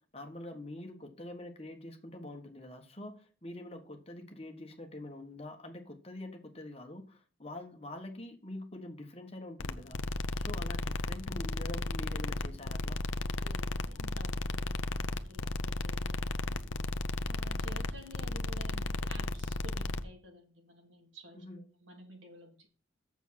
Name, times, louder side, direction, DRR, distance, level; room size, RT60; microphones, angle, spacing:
voice 1, 0.1-10.0 10.4-13.0 21.3-21.6, left 1 dB, 30° left, 1.4 m, -45 dB
sound 1, 9.6-20.0, left 2 dB, 90° left, 0.6 m, -34 dB
voice 2, 13.4-16.6 17.3-22.7, right 1 dB, 80° right, 2.9 m, -52 dB
7.2 x 7.2 x 5.8 m
head